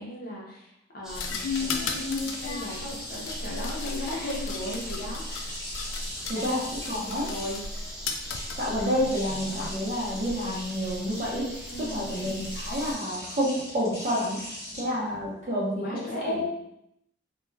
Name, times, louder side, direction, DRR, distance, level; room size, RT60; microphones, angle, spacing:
voice 1, 0.0-1.5 1.8-5.5 6.3-6.5 6.9-7.0 7.2-7.6 11.7-12.2 14.7-14.9 15.8-16.4, equal, 50° left, -4 dB, 0.7 m, -37 dB
sound 1, 1.0-12.9, equal, 5° right, 0.4 m, -38 dB
sound 2, 1.1-7.8 8.1-9.7, left 6 dB, 70° left, 0.3 m, -36 dB
sound 3, 1.2-15.7, left 1 dB, 15° left, 1.1 m, -42 dB
voice 2, 6.3-6.6 6.9-7.3 8.6-14.4 14.8-16.5, equal, 35° right, -5 dB, 0.8 m, -29 dB
2.3 x 2.2 x 3.2 m, 0.79 s
head